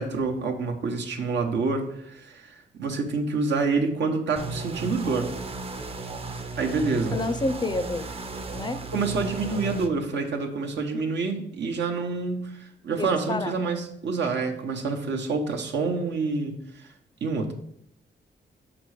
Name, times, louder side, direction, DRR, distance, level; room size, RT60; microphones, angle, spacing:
voice 1, 0.0-5.3 6.6-7.2 8.9-12.5 12.8-16.9 17.2-17.5, right 4 dB, 85° right, 2 dB, 1.1 m, -27 dB
sound 1, 4.4-9.9, right 3 dB, 35° right, 0.6 m, -35 dB
voice 2, 7.1-8.1 8.5-8.9 13.0-13.5, left 2 dB, 25° left, 12 dB, 0.4 m, -29 dB
6.1 x 5.2 x 4.9 m, 0.74 s
wide cardioid pair, 145°, 18 cm